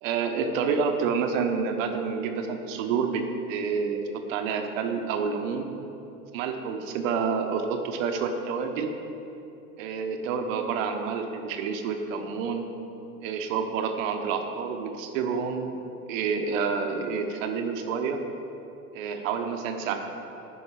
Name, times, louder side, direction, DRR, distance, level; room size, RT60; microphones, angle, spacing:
voice 1, 0.0-3.2 3.5-5.7 6.3-8.9 9.8-12.7 13.2-15.7 16.1-18.2 18.9-20.1, right 5 dB, 55° right, 5 dB, 1.0 m, -28 dB
10.0 x 4.8 x 4.9 m, 2.9 s
hypercardioid pair, 95°, 47 cm